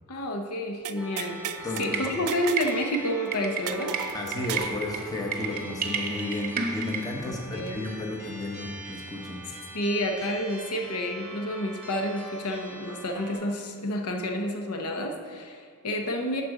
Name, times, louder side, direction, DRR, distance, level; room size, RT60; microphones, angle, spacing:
voice 1, 0.1-1.4 1.8-4.0 7.3-7.8 9.7-16.4, equal, 80° left, 3 dB, 0.8 m, -30 dB
sound 1, 0.8-1.9 2.3-2.8 3.1-3.2 3.7-4.8, right 9 dB, 75° right, 0.4 m, -35 dB
sound 2, 1.0-13.4, right 1 dB, 5° right, 2.1 m, -43 dB
sound 3, 1.8-7.0, right 5 dB, 40° right, 0.7 m, -33 dB
voice 2, 4.1-9.4, left 2 dB, 15° left, 0 dB, 1.0 m, -33 dB
11.5 x 4.2 x 4.8 m, 2.2 s
head